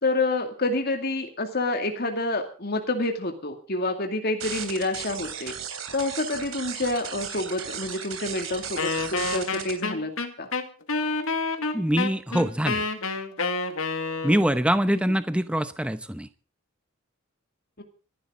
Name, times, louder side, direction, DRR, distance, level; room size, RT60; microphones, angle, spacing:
voice 1, 0.0-5.5 5.9-10.1 10.4-10.5 14.9-15.1 17.8-17.9, left 2 dB, 45° left, 4 dB, 2.4 m, -28 dB
sound 1, 4.4-9.7, right 8 dB, 70° right, 3.4 m, -35 dB
Wind instrument woodwind instrument, 8.8-14.6, left 3 dB, 70° left, 2.0 m, -28 dB
voice 2, 11.7-12.8 14.2-16.3, equal, 5° right, 11 dB, 0.8 m, -24 dB
25.0 x 11.5 x 3.8 m, 0.37 s
head